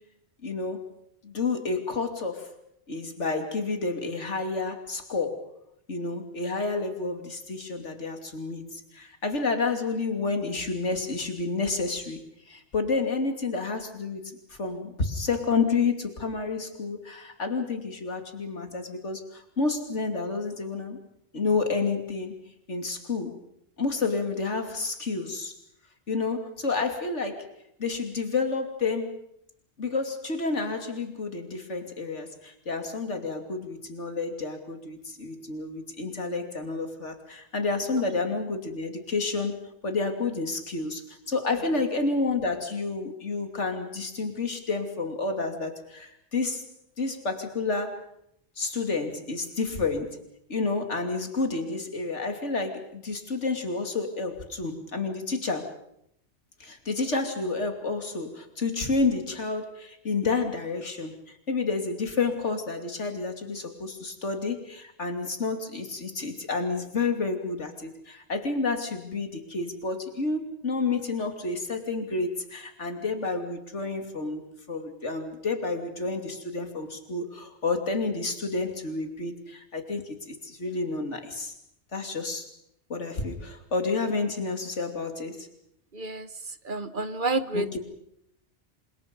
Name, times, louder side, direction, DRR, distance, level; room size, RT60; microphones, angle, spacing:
voice 1, 0.4-0.8 1.2-2.5 2.9-5.4 5.9-12.2 12.5-21.0 21.3-22.4 22.7-23.3 23.8-25.5 26.1-27.5 27.8-29.1 29.8-39.6 39.8-46.7 47.0-48.0 48.6-50.2 50.5-55.7 56.6-81.5 81.9-82.5 82.9-85.5 87.5-87.8, left 3 dB, 85° left, 6 dB, 3.1 m, -30 dB
voice 2, 85.9-87.8, right 2 dB, 45° right, 12 dB, 1.3 m, -30 dB
28.0 x 26.0 x 5.4 m, 0.74 s
omnidirectional pair, 1.2 m